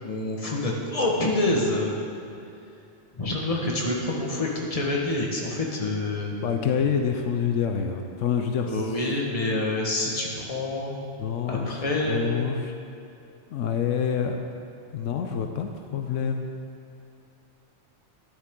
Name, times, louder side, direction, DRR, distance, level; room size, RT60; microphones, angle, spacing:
voice 1, 0.0-1.9 3.1-6.4 8.6-11.0 11.5-12.3, left 2 dB, 30° left, -2 dB, 1.5 m, -27 dB
voice 2, 6.4-8.8 11.2-12.7 13.5-14.4 14.9-16.5, left 7 dB, 80° left, 4 dB, 1.0 m, -27 dB
12.0 x 10.0 x 3.7 m, 2.7 s
omnidirectional pair, 1.3 m